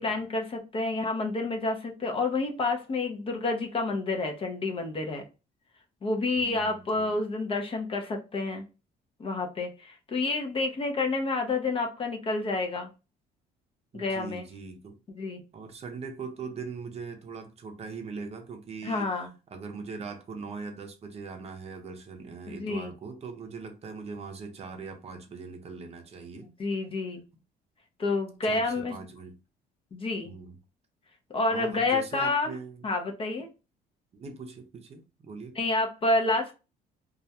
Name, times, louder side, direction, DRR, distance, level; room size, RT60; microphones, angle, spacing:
voice 1, 0.0-5.2 6.0-8.6 9.2-12.9 13.9-14.5 15.1-15.4 18.8-19.3 22.5-22.9 26.6-27.2 28.0-29.0 29.9-30.3 31.3-32.6 32.8-33.5 35.6-36.5, left 3 dB, 30° left, 0.6 m, -29 dB
voice 2, 6.4-7.1 13.9-14.9 15.5-19.1 19.5-26.5 28.4-29.3 30.2-30.6 31.5-32.8 34.1-35.6, right 4 dB, 40° right, 0.6 m, -41 dB
2.3 x 2.1 x 2.8 m
cardioid pair, 110°, 17 cm